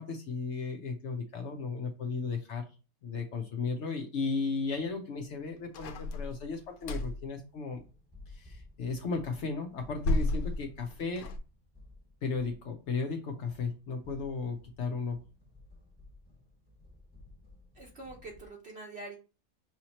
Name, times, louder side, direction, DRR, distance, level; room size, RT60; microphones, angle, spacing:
voice 1, 0.0-2.6 3.0-7.8 8.3-11.3 12.2-15.2, left 4 dB, 65° left, 4 dB, 0.8 m, -35 dB
sound 1, 5.7-7.3 9.7-11.4, left 2 dB, 90° left, 1.1 m, -33 dB
sound 2, 6.9-18.5, left 2 dB, 5° left, 1.1 m, -56 dB
voice 2, 17.7-19.2, right 2 dB, 55° right, 0 dB, 0.9 m, -45 dB
5.5 x 2.9 x 2.9 m, 0.33 s
omnidirectional pair, 1.5 m